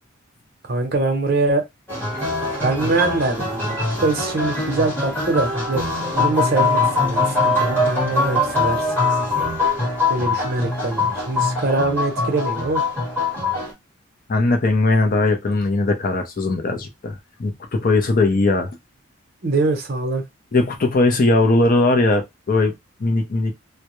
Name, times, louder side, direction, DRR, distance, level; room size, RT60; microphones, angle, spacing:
voice 1, 0.7-1.6 2.6-3.8 4.0-5.8 6.1-8.9 10.1-12.8 19.4-20.2, right 3 dB, 50° right, 0.7 m, -23 dB
sound 1, 1.9-13.7, left 2 dB, 10° left, 1.0 m, -22 dB
voice 2, 14.3-18.7 20.5-22.7 23.0-23.5, left 2 dB, 40° left, 0.4 m, -19 dB
2.2 x 2.0 x 2.9 m
head